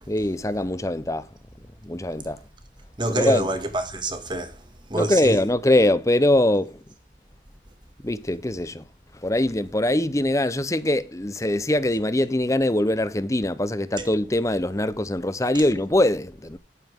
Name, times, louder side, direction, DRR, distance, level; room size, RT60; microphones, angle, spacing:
voice 1, 0.1-1.2 1.8-2.4 3.1-3.5 4.9-6.7 8.0-8.8 9.2-16.6, left 1 dB, 15° left, 0.8 m, -22 dB
voice 2, 3.0-4.6 4.9-5.4 14.0-14.1, right 2 dB, 25° right, 2.0 m, -27 dB
11.5 x 9.1 x 3.7 m
head